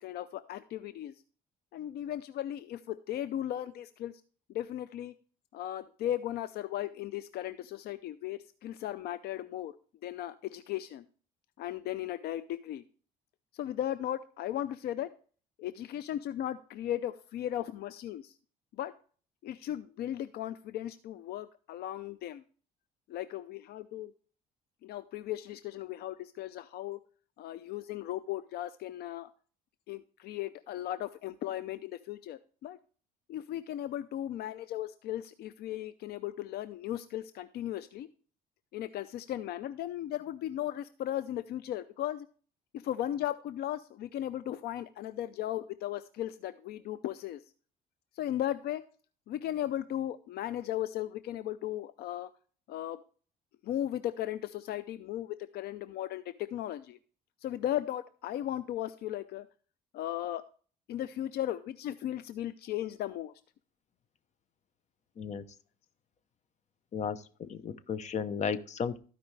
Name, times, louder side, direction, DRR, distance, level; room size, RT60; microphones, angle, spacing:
voice 1, 0.0-1.1 1.7-4.1 4.5-5.1 5.5-9.7 10.0-11.1 11.6-12.8 13.5-15.1 15.6-18.3 18.8-18.9 19.4-22.4 23.1-24.1 24.8-27.0 27.4-29.3 29.9-32.8 33.3-38.1 38.7-42.3 42.7-47.4 48.2-48.8 49.3-52.3 52.7-53.0 53.6-56.2 56.5-57.0 57.4-59.5 59.9-60.4 60.9-63.3, left 12 dB, 70° left, 13 dB, 0.5 m, -36 dB
voice 2, 66.9-69.0, left 6 dB, 45° left, 13 dB, 0.9 m, -34 dB
15.5 x 5.2 x 3.3 m, 0.41 s
cardioid pair, 110°, 17 cm